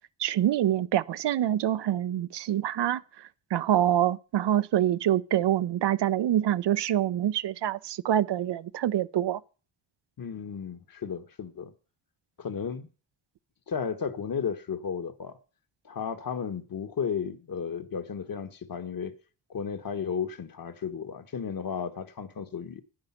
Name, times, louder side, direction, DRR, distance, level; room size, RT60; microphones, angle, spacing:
voice 1, 0.2-9.4, right 11 dB, 65° right, 0.7 m, -26 dB
voice 2, 10.2-11.7 12.4-12.9 13.7-15.4 15.8-19.1 19.5-22.8, left 6 dB, 45° left, 1.5 m, -34 dB
10.5 x 10.5 x 5.8 m
cardioid pair, 90°, 45 cm